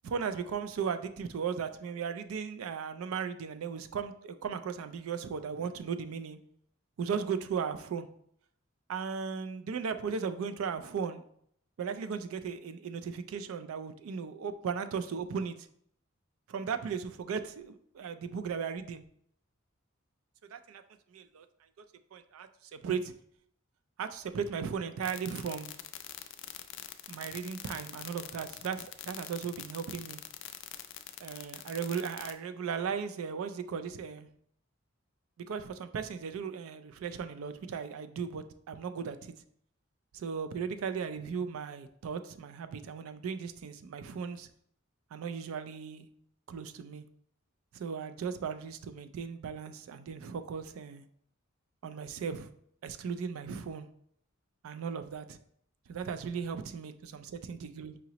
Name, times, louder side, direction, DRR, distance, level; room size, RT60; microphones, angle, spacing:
voice 1, 0.0-6.4 7.0-8.1 8.9-11.2 11.8-15.6 16.5-19.0 20.5-20.8 21.1-21.5 22.1-23.1 24.0-25.7 27.1-30.2 31.2-34.3 35.5-39.3 40.1-44.5 45.1-46.1 46.5-47.0 47.7-51.0 51.8-52.5 52.8-53.9 54.6-55.4 55.9-57.2 57.5-58.0, right 6 dB, 85° right, 10 dB, 0.4 m, -36 dB
sound 1, 25.0-32.3, left 13 dB, 60° left, 0.3 m, -43 dB
5.0 x 2.9 x 2.8 m, 0.68 s
head